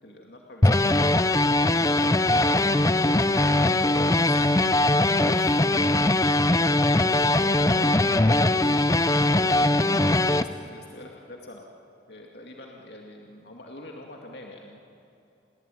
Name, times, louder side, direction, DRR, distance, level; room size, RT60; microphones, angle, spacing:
voice 1, 0.0-1.0 1.6-4.7 5.0-5.9 6.5-8.7 9.3-11.6 12.1-14.8, left 1 dB, 60° left, 0 dB, 2.4 m, -44 dB
sound 1, 0.6-10.4, left 2 dB, 15° left, 0.6 m, -21 dB
28.5 x 20.5 x 9.2 m, 2.8 s
head